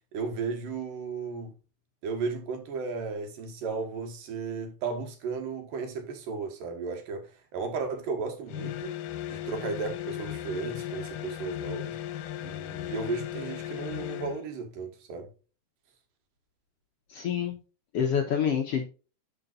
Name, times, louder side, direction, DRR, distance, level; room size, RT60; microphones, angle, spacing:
voice 1, 0.1-1.5 2.0-8.9 9.3-12.0 12.4-15.3, right 4 dB, 85° right, 3.3 m, -34 dB
sound 1, 8.5-14.4, left 12 dB, 90° left, 2.3 m, -36 dB
voice 2, 17.1-17.6 17.9-18.9, left 7 dB, 65° left, 1.6 m, -27 dB
12.0 x 5.2 x 2.5 m
omnidirectional pair, 3.8 m